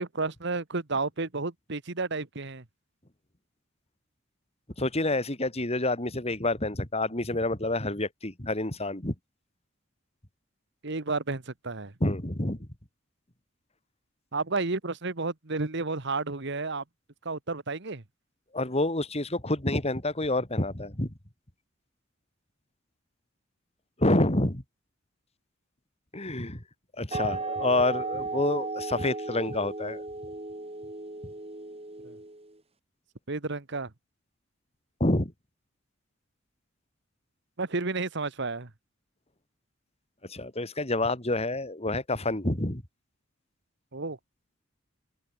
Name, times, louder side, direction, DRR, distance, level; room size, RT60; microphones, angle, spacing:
voice 1, 0.0-2.6 10.8-11.9 14.3-16.8 17.2-18.0 32.0-32.2 33.3-33.9 37.6-38.7 43.9-44.2, right 3 dB, 60° right, 1.6 m, -31 dB
voice 2, 4.8-9.1 12.0-12.7 18.5-21.1 24.0-24.6 26.1-26.6 27.0-30.0 35.0-35.3 40.3-42.8, left 2 dB, 30° left, 3.2 m, -28 dB
sound 1, 27.1-32.5, right 3 dB, 30° right, 2.9 m, -35 dB
head